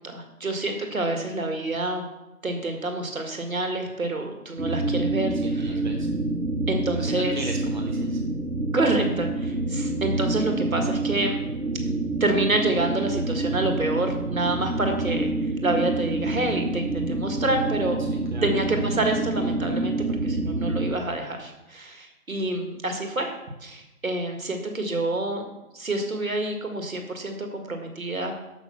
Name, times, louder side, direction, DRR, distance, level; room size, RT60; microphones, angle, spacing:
voice 1, 0.0-2.1 2.4-5.8 6.7-7.4 8.7-11.4 12.2-18.0 18.4-19.9 20.2-23.3 23.6-25.4 25.7-28.4, right 2 dB, 65° right, 4 dB, 1.8 m, -27 dB
sound 1, 4.6-20.9, right 2 dB, 85° right, 1.0 m, -27 dB
voice 2, 5.4-6.1 6.9-8.2 18.0-18.4, right 1 dB, 30° right, 0 dB, 0.6 m, -37 dB
6.6 x 5.8 x 6.9 m, 0.96 s
figure-of-eight pair, 155°, 45 cm